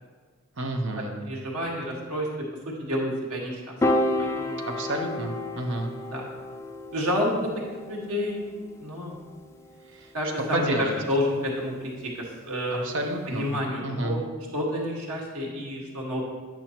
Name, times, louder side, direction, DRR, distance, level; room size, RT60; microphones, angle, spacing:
voice 1, 0.6-1.1 4.8-5.9 9.9-10.1 10.5-10.9 12.7-13.5 13.8-14.2, right 1 dB, 60° right, 3 dB, 0.8 m, -30 dB
voice 2, 1.3-2.3 2.8-3.7 4.2-4.6 6.1-6.3 6.9-7.6 7.9-8.4 8.8-9.2 10.1-12.9 13.2-14.2 14.5-16.2, left 1 dB, 90° right, -2 dB, 1.6 m, -29 dB
Piano, 3.8-10.2, left 1 dB, 10° left, 0.3 m, -31 dB
9.0 x 6.0 x 2.9 m, 1.5 s
head